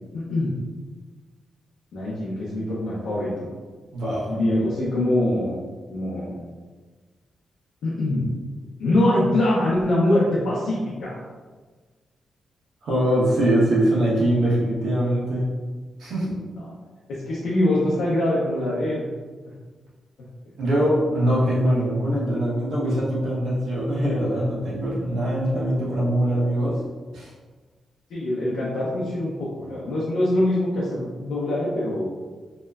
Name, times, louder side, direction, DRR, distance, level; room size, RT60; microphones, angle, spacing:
voice 1, 0.1-0.5 1.9-3.5 4.3-5.6 5.9-6.4 7.8-8.3 8.8-11.2 17.1-19.0 28.1-32.2, left 1 dB, 85° left, -7 dB, 0.5 m, -23 dB
voice 2, 3.9-4.4 12.8-15.5 16.0-16.3 20.6-26.8 27.1-27.3, right 1 dB, 80° right, -7 dB, 0.9 m, -22 dB
2.8 x 2.1 x 2.3 m, 1.4 s
wide cardioid pair, 175°, 0 cm